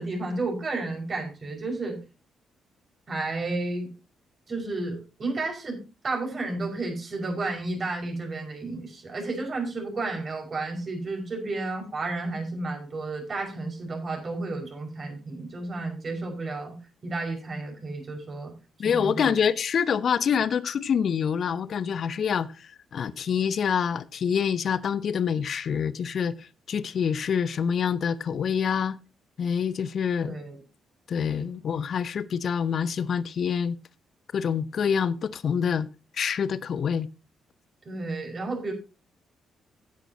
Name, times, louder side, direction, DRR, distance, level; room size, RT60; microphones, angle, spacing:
voice 1, 0.0-2.0 3.1-3.9 4.5-16.8 17.0-18.5 18.8-19.3 30.3-30.6 37.9-38.7, right 2 dB, 40° right, 5.6 m, -32 dB
voice 2, 18.8-29.0 29.4-30.4 31.1-33.8 34.3-35.9 36.2-37.1, left 7 dB, 50° left, 0.6 m, -26 dB
15.0 x 10.0 x 2.9 m
figure-of-eight pair, 40°, 0 cm